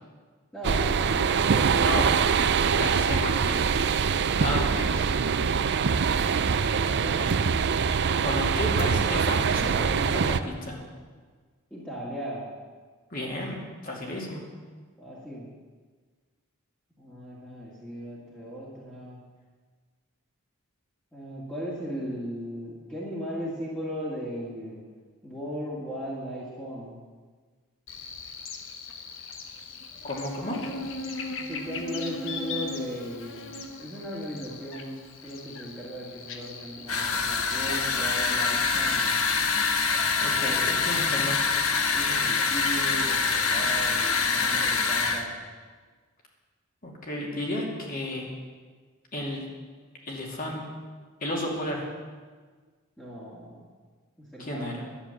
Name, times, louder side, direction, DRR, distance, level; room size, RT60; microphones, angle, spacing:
voice 1, 0.5-2.0 11.7-12.5 15.0-15.5 17.0-19.2 21.1-24.8 25.2-27.0 31.4-39.1 41.9-45.3 53.0-53.6 54.2-54.9, equal, 5° left, -7 dB, 2.1 m, -37 dB
sound 1, 0.6-10.4, right 6 dB, 50° right, 0.5 m, -24 dB
voice 2, 1.8-2.1 2.8-3.6 4.4-5.1 6.7-7.3 8.2-10.8 13.1-14.4 30.0-30.6 40.2-41.4 46.8-48.3 49.1-49.4 50.0-50.6 51.2-51.9 54.4-54.7, left 1 dB, 40° left, -2 dB, 2.6 m, -32 dB
Buzz, 27.9-37.9, left 3 dB, 60° left, 1.1 m, -38 dB
sound 2, 36.9-45.2, left 4 dB, 85° left, 1.2 m, -25 dB
11.5 x 10.0 x 7.2 m, 1.5 s
head